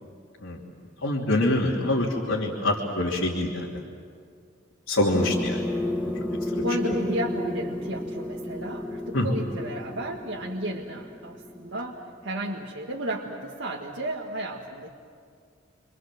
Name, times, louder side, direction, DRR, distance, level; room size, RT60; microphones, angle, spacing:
voice 1, 1.0-3.7 4.9-5.6 6.5-6.6 9.1-9.3, left 1 dB, 80° left, -5 dB, 3.0 m, -25 dB
sound 1, 5.1-12.3, left 1 dB, 5° left, 1.9 m, -32 dB
voice 2, 6.6-14.9, right 1 dB, 65° right, -3 dB, 1.9 m, -33 dB
29.5 x 24.5 x 7.6 m, 2.2 s
head